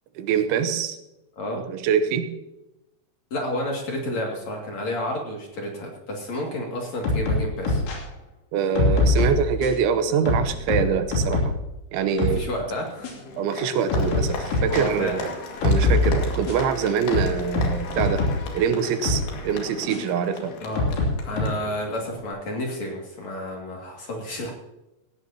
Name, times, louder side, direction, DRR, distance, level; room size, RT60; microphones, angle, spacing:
voice 1, 0.2-1.0 1.7-2.3 8.5-11.5 11.9-12.5 13.4-15.3 15.6-18.2 18.5-20.5, right 7 dB, 90° right, 9 dB, 3.4 m, -24 dB
voice 2, 3.3-7.8 12.3-13.1 14.7-15.3 20.6-20.9 21.2-24.5, left 1 dB, 45° left, 0 dB, 3.1 m, -30 dB
sound 1, 7.0-8.0 8.8-9.8 10.3-11.6 12.0-12.4 13.0-13.1 13.9-14.8 15.6-16.7 17.1-18.5 19.0-19.3 19.9-20.0 20.8-21.4, left 2 dB, 85° left, 5.3 m, -23 dB
Applause, 12.2-22.3, left 3 dB, 65° left, 4.0 m, -37 dB
17.5 x 16.0 x 2.9 m, 0.94 s
omnidirectional pair, 5.2 m